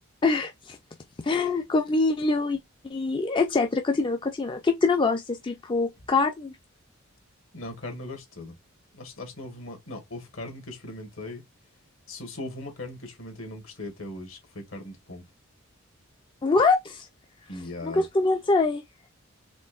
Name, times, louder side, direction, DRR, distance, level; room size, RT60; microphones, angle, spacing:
voice 1, 0.2-0.8 1.2-2.6 2.8-6.5 16.4-17.1 17.8-18.8, left 3 dB, 25° left, 0.4 m, -24 dB
voice 2, 7.5-8.5 8.9-11.4 12.1-15.2 17.5-18.0, left 2 dB, 70° left, 1.6 m, -39 dB
4.3 x 3.4 x 2.3 m
head